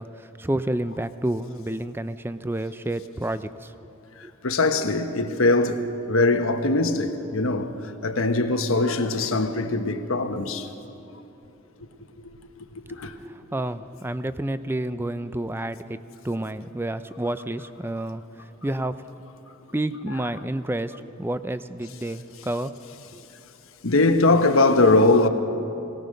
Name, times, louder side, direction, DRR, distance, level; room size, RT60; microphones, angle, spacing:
voice 1, 0.0-3.9 4.2-4.3 12.9-16.0 16.2-19.0 19.7-22.8 23.1-23.2, right 1 dB, 10° right, 0.4 m, -30 dB
voice 2, 4.2-7.7 8.0-11.0 12.9-13.1 23.8-25.3, left 2 dB, 80° left, 1.2 m, -21 dB
22.5 x 18.0 x 6.6 m
head